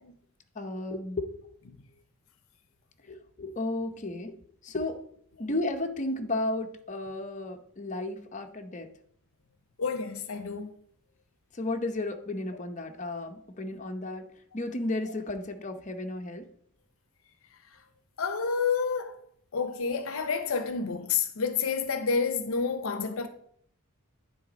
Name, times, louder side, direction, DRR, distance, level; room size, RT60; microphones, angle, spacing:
voice 1, 0.5-1.3 3.0-4.4 4.6-5.1 5.4-8.9 11.5-16.5, left 2 dB, 35° left, 0.7 m, -33 dB
voice 2, 9.8-10.7 18.2-19.1 19.5-23.3, left 5 dB, 65° left, 0.6 m, -29 dB
10.0 x 4.0 x 5.1 m
head